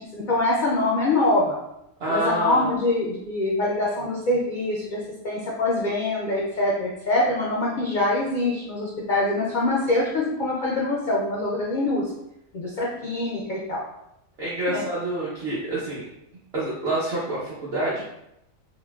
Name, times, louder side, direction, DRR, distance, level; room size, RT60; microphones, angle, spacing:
voice 1, 0.0-1.6 2.1-5.0 5.2-12.1 12.5-13.8 14.7-14.8, left 2 dB, 70° left, -4 dB, 0.4 m, -24 dB
voice 2, 2.0-2.7 14.4-16.1 16.5-18.0, right 1 dB, 55° right, -7 dB, 0.8 m, -27 dB
3.8 x 2.1 x 2.2 m, 0.83 s
omnidirectional pair, 1.4 m